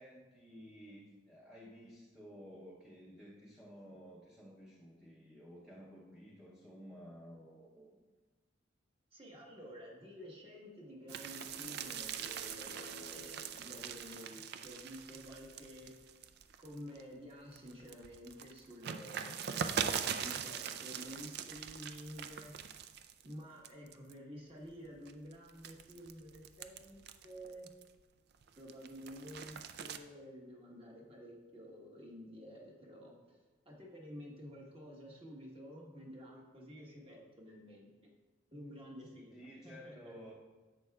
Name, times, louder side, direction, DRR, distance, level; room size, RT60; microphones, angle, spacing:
voice 1, 0.0-8.0 9.5-9.7 39.3-40.3, equal, 5° right, -5 dB, 0.7 m, -54 dB
voice 2, 9.1-15.9 16.6-22.5 23.2-27.7 28.6-33.4 33.6-37.9 38.5-40.1, equal, 25° right, -2 dB, 1.3 m, -51 dB
sound 1, 10.8-14.6, left 2 dB, 60° left, 0.5 m, -56 dB
sound 2, 11.1-17.0 17.5-23.3 23.6-24.1 24.7-28.0 28.4-30.0, right 7 dB, 50° right, 0.4 m, -42 dB
10.5 x 7.5 x 2.3 m, 1.3 s
head